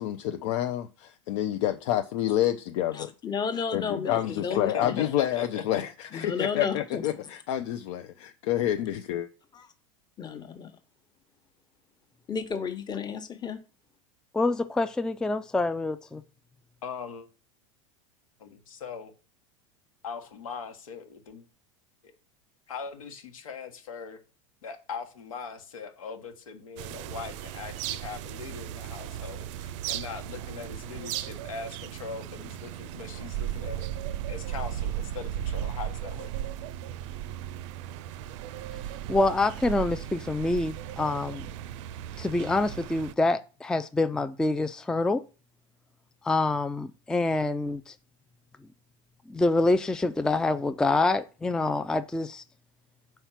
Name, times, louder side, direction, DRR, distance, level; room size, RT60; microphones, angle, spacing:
voice 1, 0.0-3.1 3.7-9.3, left 12 dB, 65° left, 0.6 m, -28 dB
voice 2, 2.9-5.1 6.1-7.0 9.5-9.7 10.2-10.8 12.3-13.6, left 6 dB, 25° left, 1.0 m, -32 dB
voice 3, 4.2-5.6 16.8-17.2 18.4-19.1 20.0-21.4 22.7-24.2 24.6-33.9 34.3-36.3, left 6 dB, 85° left, 1.5 m, -40 dB
voice 4, 14.3-16.2 39.1-41.4 42.2-45.2 46.2-47.9 49.3-52.4, left 2 dB, 5° left, 0.4 m, -26 dB
sound 1, 26.8-43.1, right 12 dB, 65° right, 0.5 m, -36 dB
4.6 x 4.3 x 5.8 m
hypercardioid pair, 100°, 17 cm